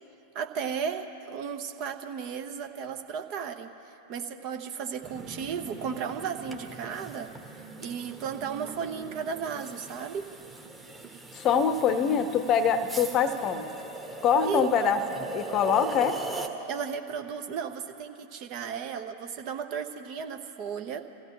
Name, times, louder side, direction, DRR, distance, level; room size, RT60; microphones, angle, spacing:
voice 1, 0.3-10.3 14.4-14.7 16.7-21.1, right 7 dB, 40° right, 6 dB, 1.0 m, -35 dB
sound 1, 5.0-16.5, right 3 dB, 10° right, 1.4 m, -41 dB
voice 2, 11.3-13.7 14.2-16.2, left 6 dB, 30° left, 11 dB, 0.8 m, -24 dB
26.5 x 15.5 x 3.0 m, 2.8 s
figure-of-eight pair, 90°, 0 cm